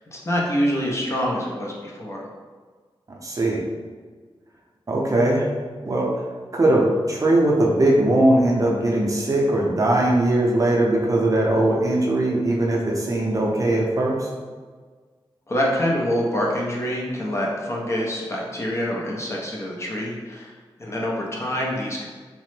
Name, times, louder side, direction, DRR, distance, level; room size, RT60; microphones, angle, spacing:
voice 1, 0.1-2.2 15.5-20.5 20.8-22.1, equal, 30° left, -3 dB, 0.5 m, -26 dB
voice 2, 3.1-3.6 4.9-5.5 5.8-6.2 6.5-14.3, right 1 dB, 35° right, -3 dB, 0.5 m, -20 dB
2.9 x 2.0 x 3.1 m, 1.5 s
wide cardioid pair, 115°, 9 cm